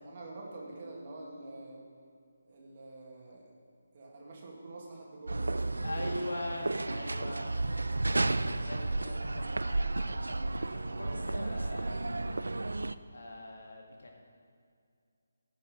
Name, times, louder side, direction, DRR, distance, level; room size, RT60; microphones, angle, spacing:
voice 1, 0.0-1.9 2.4-3.5 3.9-5.8 7.4-7.5 10.8-11.2, right 2 dB, 40° right, -2 dB, 2.3 m, -47 dB
sound 1, 5.3-12.9, right 2 dB, 85° right, 0.4 m, -32 dB
voice 2, 5.8-7.5 8.4-10.2 10.6-12.4 13.1-14.2, left 1 dB, 70° left, 1 dB, 1.9 m, -42 dB
14.5 x 5.4 x 5.1 m, 2.3 s
figure-of-eight pair, 155°, 0 cm